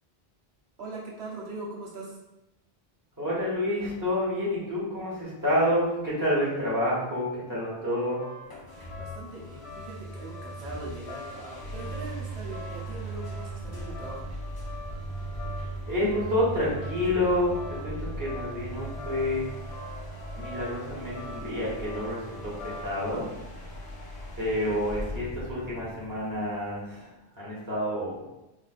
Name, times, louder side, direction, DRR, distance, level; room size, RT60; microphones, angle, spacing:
voice 1, 0.8-2.2 8.9-14.3, right 2 dB, 90° right, -4 dB, 1.1 m, -41 dB
voice 2, 3.2-8.2 15.9-19.5 20.4-23.2 24.4-27.1 27.4-28.2, left 1 dB, 20° right, -7 dB, 1.1 m, -28 dB
sound 1, 7.7-23.1, left 3 dB, 80° left, 0.9 m, -45 dB
sound 2, 8.4-26.9, right 1 dB, 35° left, 0.4 m, -39 dB
4.2 x 2.5 x 2.4 m, 0.95 s
omnidirectional pair, 1.1 m